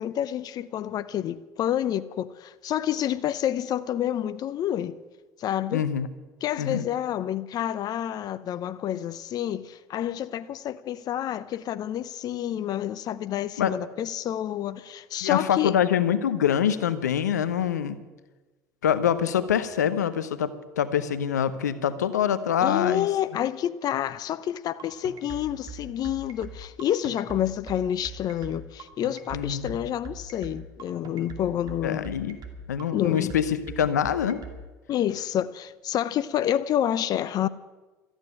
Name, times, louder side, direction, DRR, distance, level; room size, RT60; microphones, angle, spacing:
voice 1, 0.0-5.0 5.4-5.9 6.4-15.7 22.6-32.1 32.9-33.3 34.9-37.5, left 11 dB, 45° left, 0.7 m, -28 dB
voice 2, 5.7-6.1 6.6-6.8 13.6-13.7 15.2-18.0 18.8-23.1 29.3-29.8 31.8-32.4 32.7-34.4, left 9 dB, 90° left, 0.8 m, -25 dB
sound 1, 24.8-34.6, right 5 dB, 45° right, 2.5 m, -41 dB
13.5 x 9.0 x 9.9 m
hypercardioid pair, 75°, 9 cm